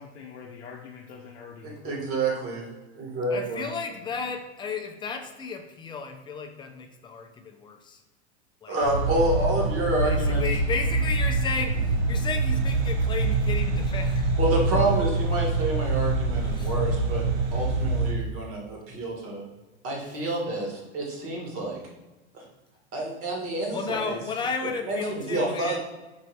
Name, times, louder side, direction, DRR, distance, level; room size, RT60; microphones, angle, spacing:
voice 1, 0.0-2.1, left 6 dB, 70° left, -1 dB, 0.6 m, -44 dB
voice 2, 1.6-2.6 2.9-3.7 8.7-10.5 14.4-17.2 17.5-19.4 19.8-21.8 22.3-22.4 22.9-24.1 24.8-25.8, right 2 dB, 40° right, -1 dB, 1.4 m, -28 dB
voice 3, 3.3-8.0 8.6-8.8 10.0-14.4 16.6-16.7 23.7-25.8, left 5 dB, 15° left, 4 dB, 0.3 m, -33 dB
sound 1, 8.8-18.1, right 3 dB, 80° right, 0.7 m, -25 dB
4.4 x 2.7 x 3.1 m, 1.1 s
hypercardioid pair, 100°, 34 cm